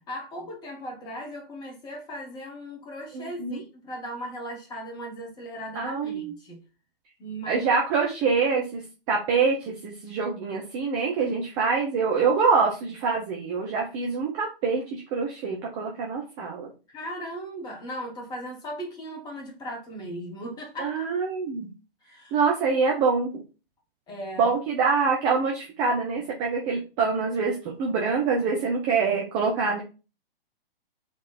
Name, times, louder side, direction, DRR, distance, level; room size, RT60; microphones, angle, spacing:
voice 1, 0.1-6.6 7.2-7.6 16.9-21.1 22.0-22.4 24.1-24.5, equal, 15° left, 1.1 m, -37 dB
voice 2, 3.1-3.6 5.7-6.3 7.5-16.7 20.8-21.7 22.3-23.4 24.4-29.8, right 5 dB, 15° right, 0.5 m, -25 dB
3.7 x 3.1 x 4.3 m
figure-of-eight pair, 125°, 30 cm